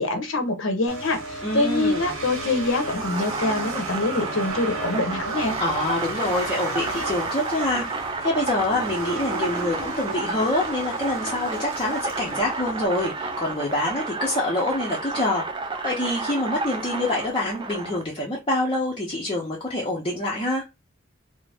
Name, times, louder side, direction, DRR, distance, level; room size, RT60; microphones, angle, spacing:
voice 1, 0.0-5.6, left 2 dB, 65° left, 0.7 m, -25 dB
sound 1, 0.9-13.9, right 2 dB, 75° right, 0.8 m, -34 dB
voice 2, 1.4-2.1 5.6-20.6, left 1 dB, 25° left, 0.6 m, -26 dB
sound 2, 2.8-18.0, right 3 dB, 25° right, 0.3 m, -31 dB
2.5 x 2.0 x 3.3 m
head